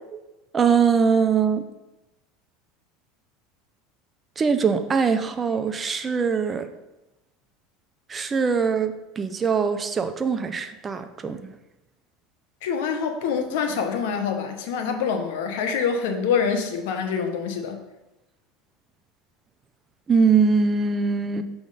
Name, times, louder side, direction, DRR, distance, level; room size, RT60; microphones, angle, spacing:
voice 1, 0.5-1.6 4.4-6.7 8.1-11.4 20.1-21.4, right 5 dB, 25° right, 8 dB, 0.5 m, -22 dB
voice 2, 12.6-17.8, left 6 dB, 80° left, 6 dB, 0.9 m, -25 dB
6.2 x 3.5 x 5.5 m, 0.99 s
supercardioid pair, 120°, 0 cm